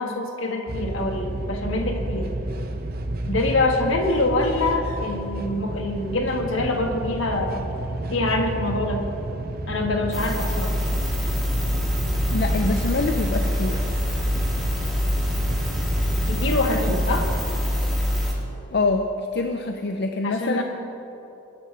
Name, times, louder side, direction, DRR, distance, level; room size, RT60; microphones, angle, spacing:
voice 1, 0.0-2.3 3.2-7.7 8.1-9.1 9.7-10.7 16.3-17.3 20.2-20.6, left 2 dB, 70° left, 3 dB, 1.5 m, -25 dB
sound 1, 0.7-17.4, right 1 dB, 45° right, 0.8 m, -31 dB
sound 2, 10.1-18.3, left 1 dB, ahead, 1.7 m, -25 dB
voice 2, 12.3-13.9 18.7-20.6, left 3 dB, 50° left, 5 dB, 0.5 m, -25 dB
22.0 x 10.5 x 3.3 m, 3.0 s
head